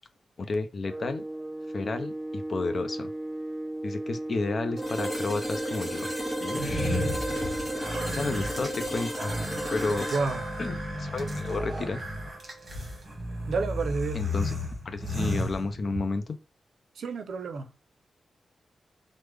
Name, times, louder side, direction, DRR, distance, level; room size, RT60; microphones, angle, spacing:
voice 1, 0.4-1.3 1.7-3.1 3.8-6.1 6.4-7.1 8.1-9.3 9.7-10.1 10.6-12.0 14.1-14.5 14.8-16.4, left 3 dB, 45° left, 0.4 m, -32 dB
sound 1, 0.8-7.9, right 1 dB, 5° right, 0.7 m, -36 dB
sound 2, 4.8-12.6, equal, 15° left, 1.5 m, -34 dB
sound 3, 6.5-16.2, left 1 dB, 30° right, 1.1 m, -33 dB
voice 2, 10.1-10.4 13.5-14.3 17.0-17.7, right 4 dB, 80° right, 0.4 m, -30 dB
3.2 x 2.0 x 3.3 m
wide cardioid pair, 140°, 0 cm